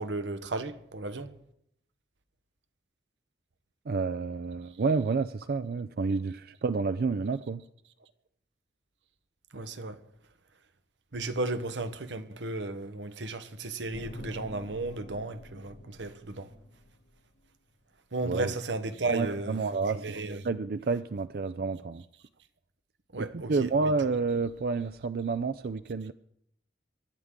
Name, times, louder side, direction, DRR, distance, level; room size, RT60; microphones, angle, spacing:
voice 1, 0.0-1.3 9.5-10.0 11.1-16.5 18.1-19.6 19.9-20.4 23.1-23.7, right 2 dB, 90° right, 1.1 m, -34 dB
voice 2, 3.9-7.6 18.2-18.5 19.1-20.0 20.4-22.0 23.2-26.1, right 4 dB, 55° right, 0.4 m, -29 dB
sound 1, 13.9-17.3, equal, 70° left, 1.3 m, -46 dB
23.5 x 11.5 x 3.7 m
head